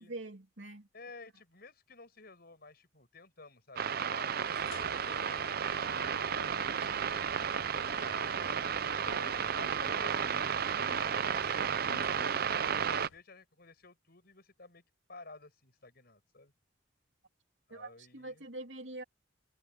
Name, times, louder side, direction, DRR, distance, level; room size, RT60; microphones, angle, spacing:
voice 1, 0.0-0.9 17.7-19.0, right 2 dB, 70° right, 3.1 m, -44 dB
voice 2, 0.9-6.8 7.1-10.2 12.5-14.8 15.1-16.5 17.7-18.4, left 3 dB, 50° left, 6.7 m, -54 dB
sound 1, 3.8-13.1, right 7 dB, 50° right, 0.6 m, -33 dB
sound 2, 4.4-13.2, left 5 dB, 85° left, 0.7 m, -50 dB
head